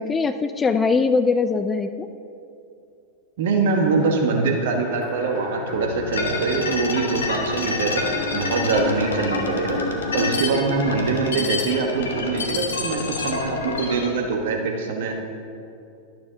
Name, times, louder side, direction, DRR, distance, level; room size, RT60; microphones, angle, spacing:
voice 1, 0.0-2.1, left 4 dB, 15° left, 10 dB, 0.3 m, -21 dB
voice 2, 3.4-8.0 8.3-9.8 10.1-15.1, right 4 dB, 55° right, 2 dB, 1.1 m, -23 dB
sound 1, 3.7-10.3, left 3 dB, 50° left, 2.2 m, -33 dB
sound 2, 6.1-14.1, left 3 dB, 65° left, 0.9 m, -28 dB
11.5 x 6.7 x 3.5 m, 2.6 s
figure-of-eight pair, 90°, 0 cm